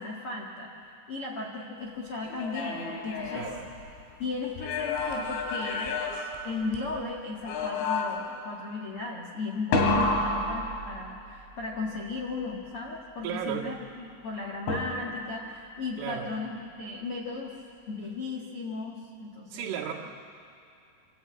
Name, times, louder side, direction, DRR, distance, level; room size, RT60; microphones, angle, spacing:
voice 1, 0.0-3.5 4.2-6.0 6.4-17.5 17.9-19.8, left 3 dB, 70° left, -2 dB, 1.3 m, -36 dB
sound 1, 2.2-4.1 4.6-7.0 7.4-8.4 9.7-11.3 14.7-15.3, left 3 dB, 85° left, 4.9 m, -30 dB
voice 2, 3.3-3.6 13.2-13.7 16.0-16.3 19.5-19.9, right 10 dB, 90° right, -1 dB, 4.4 m, -34 dB
26.0 x 14.5 x 8.6 m, 2.5 s
omnidirectional pair, 5.4 m